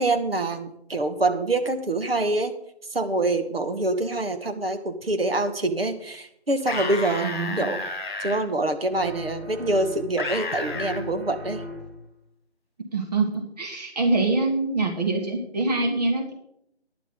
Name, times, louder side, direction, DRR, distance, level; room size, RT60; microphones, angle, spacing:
voice 1, 0.0-2.5 2.9-7.8 8.2-11.6, right 2 dB, 60° right, 7 dB, 1.6 m, -25 dB
sound 1, 6.6-8.4 10.2-11.0, left 3 dB, 45° left, 1.9 m, -31 dB
voice 2, 7.2-7.7 12.9-16.3, right 3 dB, 35° right, 2 dB, 2.3 m, -25 dB
sound 2, 8.9-10.3 10.6-12.1, left 2 dB, 90° right, 6.4 m, -38 dB
14.5 x 10.5 x 3.9 m, 0.73 s
figure-of-eight pair, 155°, 33 cm